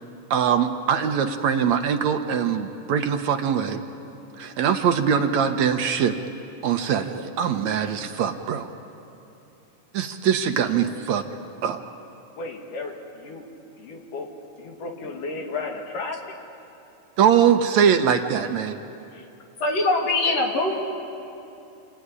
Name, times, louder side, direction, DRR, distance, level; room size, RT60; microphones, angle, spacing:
voice 1, 0.3-3.8 4.4-6.1 6.6-8.7 9.9-11.2 11.6-11.8 17.2-18.8, right 8 dB, 70° right, 6 dB, 2.1 m, -22 dB
voice 2, 12.4-12.9 13.2-13.4 13.8-14.3 14.6-16.2, left 3 dB, 80° left, 2 dB, 3.7 m, -33 dB
voice 3, 19.6-20.7, left 2 dB, 55° left, 1 dB, 3.6 m, -22 dB
28.5 x 20.0 x 9.8 m, 2.8 s
omnidirectional pair, 3.6 m